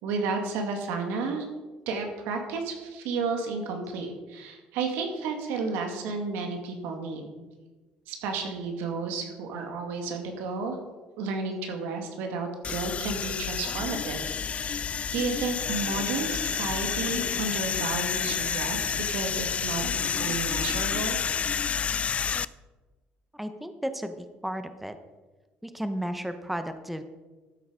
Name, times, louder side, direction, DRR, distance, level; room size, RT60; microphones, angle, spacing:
voice 1, 0.0-1.5 1.9-7.3 8.1-10.8 11.2-21.2, right 4 dB, 85° right, 4 dB, 2.2 m, -32 dB
sound 1, 12.6-22.5, left 7 dB, 35° left, 0.4 m, -29 dB
voice 2, 23.3-25.0 25.6-27.0, equal, 5° right, 9 dB, 0.9 m, -33 dB
13.0 x 7.9 x 5.1 m, 1.2 s
cardioid pair, 105°, 4 cm